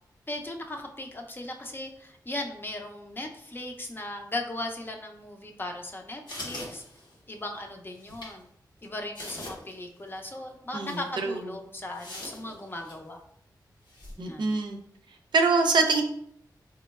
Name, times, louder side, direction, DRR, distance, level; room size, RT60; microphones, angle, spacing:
voice 1, 0.3-6.8 7.3-8.5 8.8-13.2 14.2-14.5, left 1 dB, 30° left, 3 dB, 0.5 m, -37 dB
sound 1, 6.3-7.3 8.0-8.3 8.8-8.9 9.1-9.8 10.1-10.2 10.8-11.0 11.9-13.0 13.9-14.1, left 1 dB, 80° left, 0.9 m, -41 dB
voice 2, 10.7-11.4 14.2-14.8 15.3-16.0, right 3 dB, 85° right, 4 dB, 0.5 m, -24 dB
3.5 x 3.0 x 2.3 m, 0.70 s
wide cardioid pair, 80°, 8 cm